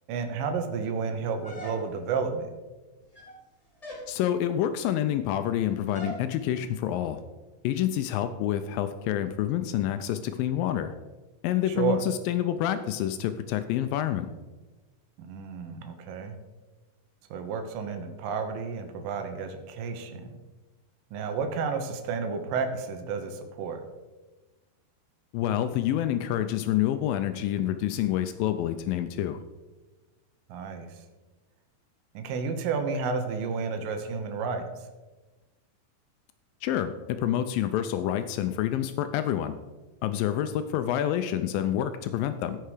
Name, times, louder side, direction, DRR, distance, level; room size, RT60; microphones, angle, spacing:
voice 1, 0.1-2.5 11.7-12.0 15.2-16.4 17.3-20.3 21.1-23.8 30.5-31.0 32.1-34.7, right 5 dB, 80° right, 6 dB, 2.7 m, -31 dB
sound 1, 1.4-2.2 3.0-3.4 3.8-4.1 5.9-6.3, right 1 dB, 20° left, 1.0 m, -41 dB
voice 2, 4.1-7.2 7.6-10.9 11.4-14.3 25.3-29.4 36.6-39.5 40.0-42.6, left 11 dB, 85° left, 9 dB, 2.2 m, -28 dB
15.5 x 5.7 x 4.9 m, 1.2 s
omnidirectional pair, 4.1 m